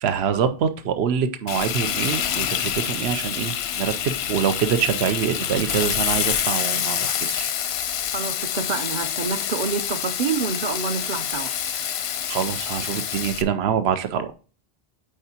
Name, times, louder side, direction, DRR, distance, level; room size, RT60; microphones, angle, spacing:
voice 1, 0.0-7.5 12.3-14.3, right 8 dB, 80° right, 0.9 m, -25 dB
Frying (food), 1.5-13.4, left 9 dB, 90° left, 0.9 m, -27 dB
voice 2, 8.1-11.5, right 5 dB, 50° right, 0.7 m, -27 dB
8.5 x 4.5 x 2.8 m
omnidirectional pair, 1.0 m